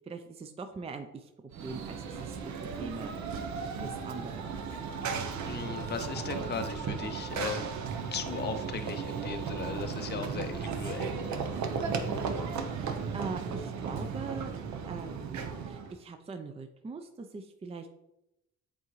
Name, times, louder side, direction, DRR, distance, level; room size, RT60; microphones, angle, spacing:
voice 1, 0.1-1.3 1.6-2.4 2.8-3.1 3.8-4.4 12.7-14.5 14.9-17.9, right 4 dB, 20° right, 6 dB, 0.5 m, -42 dB
Run / Train, 1.5-16.0, right 5 dB, 70° right, 0.8 m, -35 dB
voice 2, 5.4-7.8 8.1-11.1, left 5 dB, 35° left, 7 dB, 0.6 m, -37 dB
8.2 x 3.7 x 3.1 m, 0.87 s
cardioid pair, 90°, 30 cm